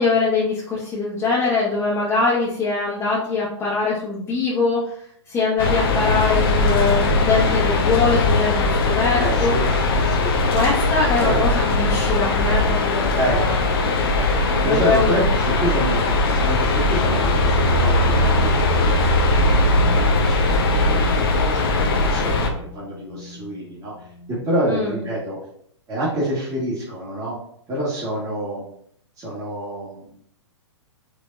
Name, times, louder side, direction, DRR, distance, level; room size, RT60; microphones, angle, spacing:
voice 1, 0.0-5.0 5.3-9.5 10.5-13.6 14.1-14.2 14.6-15.3 24.7-25.0, left 4 dB, 15° left, -7 dB, 1.2 m, -22 dB
sound 1, 5.6-22.5, left 2 dB, 50° left, 0.7 m, -19 dB
voice 2, 9.2-9.6 10.0-10.3 11.2-11.6 13.2-13.4 14.6-23.9 24.3-25.4 25.9-27.4 27.7-28.6 29.2-30.0, right 1 dB, 20° right, -8 dB, 1.7 m, -27 dB
sound 2, 17.5-25.2, left 4 dB, 80° left, 0.7 m, -34 dB
5.1 x 3.4 x 2.6 m, 0.66 s
figure-of-eight pair, 115°, 16 cm